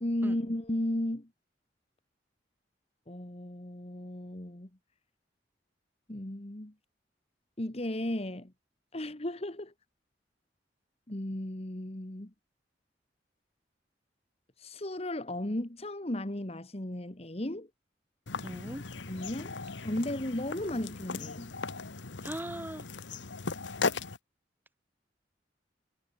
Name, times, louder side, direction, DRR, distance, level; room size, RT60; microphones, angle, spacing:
voice 1, 0.0-1.3 3.1-4.7 6.1-6.7 7.6-8.5 8.9-9.7 11.1-12.3 14.6-17.7 19.1-21.5, left 1 dB, 35° left, 1.6 m, -35 dB
sound 1, 18.3-24.2, left 4 dB, 85° left, 1.4 m, -37 dB
voice 2, 18.4-18.8 22.2-22.8, right 1 dB, 10° right, 1.2 m, -39 dB
head